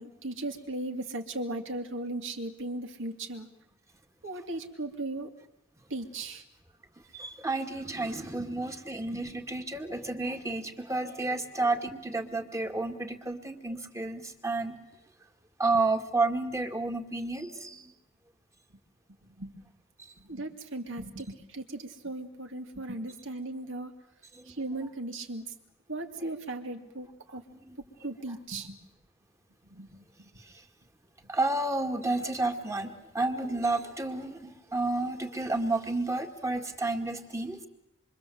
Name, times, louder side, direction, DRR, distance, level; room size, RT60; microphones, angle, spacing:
voice 1, 0.0-3.5 4.2-5.3 5.9-6.4 9.1-9.2 19.4-19.5 20.2-23.9 24.5-25.5 25.9-27.4 28.0-28.8 29.7-30.0, right 2 dB, 65° right, 6 dB, 2.5 m, -37 dB
voice 2, 7.1-14.7 15.6-17.9 24.3-24.6 27.5-27.8 31.3-37.6, right 2 dB, 15° right, 5 dB, 2.0 m, -31 dB
26.5 x 24.5 x 7.9 m, 0.87 s
head